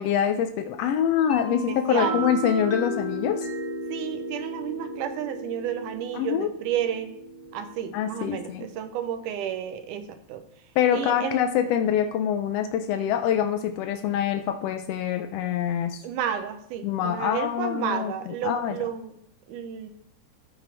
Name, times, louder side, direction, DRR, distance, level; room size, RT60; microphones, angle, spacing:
voice 1, 0.0-3.5 6.1-6.5 7.9-8.7 10.8-16.0 16.8-18.7, left 9 dB, 85° left, 7 dB, 1.4 m, -25 dB
sound 1, 1.3-8.9, equal, 20° left, 2.0 m, -34 dB
voice 2, 1.7-2.3 3.9-7.2 7.5-10.4 10.9-11.4 16.0-19.1 19.5-19.9, right 9 dB, 90° right, 8 dB, 2.3 m, -31 dB
14.0 x 5.7 x 3.4 m, 0.70 s
omnidirectional pair, 3.5 m